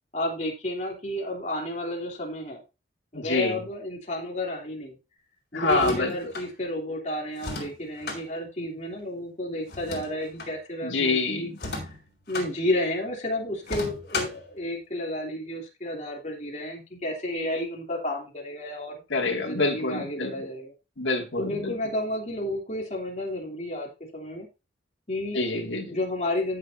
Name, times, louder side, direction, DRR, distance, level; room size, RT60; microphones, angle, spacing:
voice 1, 0.1-2.6 3.1-5.0 5.5-11.8 12.3-19.0 19.4-20.7 21.4-24.5 25.1-25.4 25.8-26.6, left 1 dB, 40° left, -1 dB, 3.2 m, -31 dB
voice 2, 3.1-3.6 5.5-6.1 10.8-11.6 19.1-20.5 21.0-21.7 25.3-26.0, left 3 dB, 85° left, 1 dB, 2.4 m, -26 dB
sound 1, 5.6-6.5 7.4-8.2 9.7-10.5 11.5-12.5 13.6-14.5, left 3 dB, 60° left, 4.6 m, -34 dB
16.0 x 7.0 x 2.8 m, 0.29 s
head